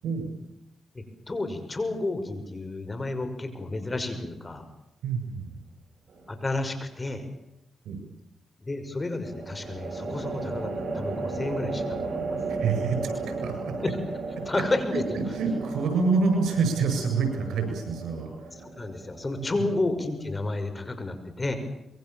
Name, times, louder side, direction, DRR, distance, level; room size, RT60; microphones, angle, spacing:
voice 1, 0.9-4.6 6.3-7.3 8.6-12.4 13.8-14.0 14.4-15.0 18.6-21.6, left 2 dB, 30° left, 9 dB, 5.9 m, -31 dB
voice 2, 5.0-5.6 7.9-8.0 12.5-13.2 13.4-13.7 14.9-18.3, right 4 dB, 85° right, 6 dB, 7.6 m, -27 dB
sound 1, 6.1-6.7 9.2-20.6, right 3 dB, 65° right, 6.0 m, -35 dB
25.5 x 22.5 x 7.2 m, 0.86 s
supercardioid pair, 60°, 0 cm